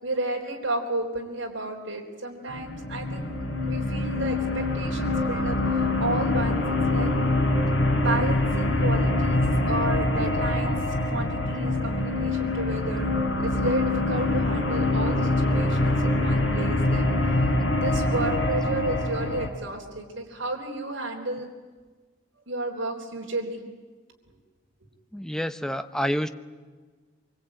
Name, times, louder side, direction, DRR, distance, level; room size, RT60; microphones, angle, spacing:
voice 1, 0.0-3.3 3.6-6.6 6.9-7.1 7.9-10.7 11.0-13.1 13.4-17.1 17.8-21.5 22.5-23.6, right 2 dB, 70° right, -1 dB, 3.9 m, -32 dB
sound 1, 2.5-19.5, left 2 dB, 65° left, 4.0 m, -24 dB
voice 2, 25.1-26.3, equal, 5° left, 10 dB, 0.8 m, -28 dB
25.0 x 24.5 x 8.9 m, 1.4 s
head